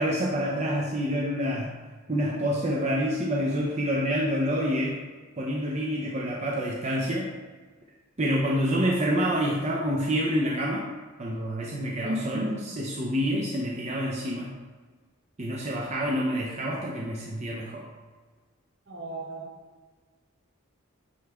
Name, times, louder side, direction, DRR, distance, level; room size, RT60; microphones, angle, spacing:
voice 1, 0.0-1.7 2.1-5.0 5.4-7.3 8.2-10.9 11.2-12.5 12.8-14.5 15.4-17.9, equal, 30° right, -3 dB, 0.6 m, -27 dB
voice 2, 12.0-12.7 18.9-19.6, equal, 55° right, 1 dB, 1.0 m, -33 dB
9.2 x 3.3 x 3.6 m, 1.4 s
head